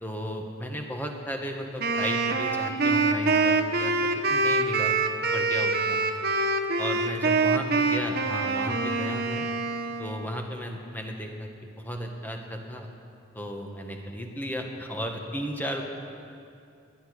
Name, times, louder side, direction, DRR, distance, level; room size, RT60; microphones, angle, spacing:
voice 1, 0.0-4.9 5.3-6.0 6.8-9.5 10.0-11.5 11.8-12.9 13.3-15.8, equal, 10° left, 2 dB, 1.4 m, -34 dB
Wind instrument woodwind instrument, 1.8-10.2, right 3 dB, 55° right, 1.1 m, -25 dB
21.0 x 10.5 x 6.5 m, 2.4 s
head